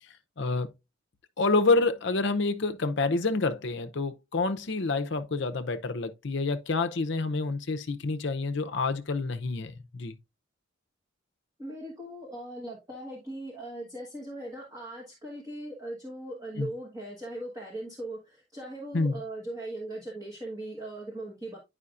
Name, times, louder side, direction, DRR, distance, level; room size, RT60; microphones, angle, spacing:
voice 1, 0.4-0.7 1.4-10.2 16.6-16.7 18.9-19.2, left 3 dB, 60° left, 0.7 m, -28 dB
voice 2, 11.6-21.6, right 1 dB, 15° right, 1.4 m, -39 dB
9.7 x 5.0 x 2.5 m
head